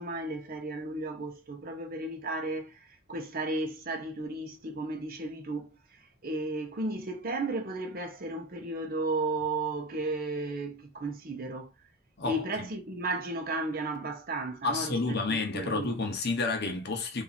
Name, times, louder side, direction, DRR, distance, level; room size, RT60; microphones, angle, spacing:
voice 1, 0.0-5.7 6.2-11.7 12.2-16.0, right 2 dB, 45° right, 0.8 m, -34 dB
voice 2, 12.2-12.7 14.6-17.2, left 3 dB, 55° left, 0.8 m, -30 dB
3.0 x 2.6 x 4.0 m
head